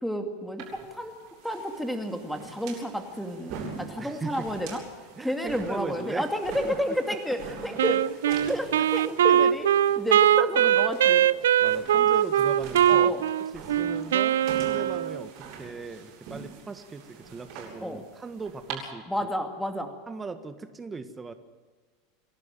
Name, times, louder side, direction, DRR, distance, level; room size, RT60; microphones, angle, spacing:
voice 1, 0.0-1.1 1.4-4.8 5.2-8.0 8.3-8.7 8.9-11.3 12.9-13.2 17.8-18.0 19.1-19.9, equal, ahead, 5 dB, 2.3 m, -31 dB
sound 1, 0.6-18.7, right 5 dB, 55° right, 7.9 m, -44 dB
voice 2, 4.0-4.5 5.2-6.3 6.6-6.8 7.1-7.2 7.5-7.6 8.4-8.6 11.6-13.1 13.5-19.3 20.1-21.3, right 4 dB, 20° right, 9 dB, 1.7 m, -38 dB
Wind instrument woodwind instrument, 7.8-15.3, right 10 dB, 75° right, 0.5 m, -22 dB
28.5 x 12.0 x 9.2 m, 1.5 s
hypercardioid pair, 90°, 0 cm